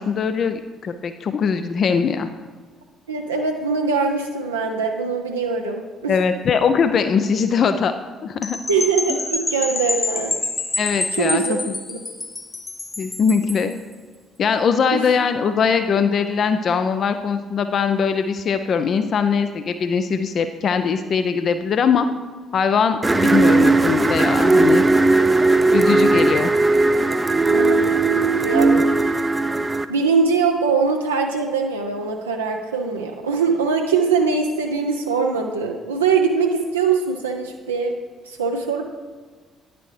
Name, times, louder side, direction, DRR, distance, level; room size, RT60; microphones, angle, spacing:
voice 1, 0.0-2.3 6.1-7.9 8.2-8.6 10.8-11.7 13.0-13.7 14.4-22.1 22.5-24.8 25.7-26.5, left 6 dB, 45° left, 9 dB, 0.3 m, -21 dB
voice 2, 3.1-6.2 8.7-10.4 11.1-11.6 11.9-12.0 14.9-15.1 27.5-29.2 29.9-37.9 38.2-38.8, right 5 dB, 80° right, 1 dB, 0.4 m, -22 dB
sound 1, 8.4-13.7, left 3 dB, 25° left, 1.0 m, -27 dB
sound 2, 23.0-29.8, right 3 dB, 20° right, 0.4 m, -17 dB
9.8 x 6.7 x 3.2 m, 1.5 s
figure-of-eight pair, 45°, 0 cm